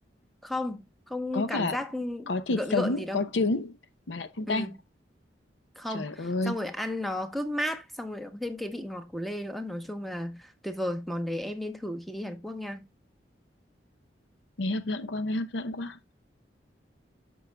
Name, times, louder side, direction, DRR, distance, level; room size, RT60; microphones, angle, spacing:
voice 1, 0.4-3.2 4.5-4.8 5.8-12.9, left 1 dB, ahead, 0.9 m, -34 dB
voice 2, 1.3-1.8 2.3-3.8 4.1-4.7 5.9-6.5 14.6-16.1, left 2 dB, 85° left, 0.7 m, -29 dB
13.5 x 5.4 x 2.2 m
head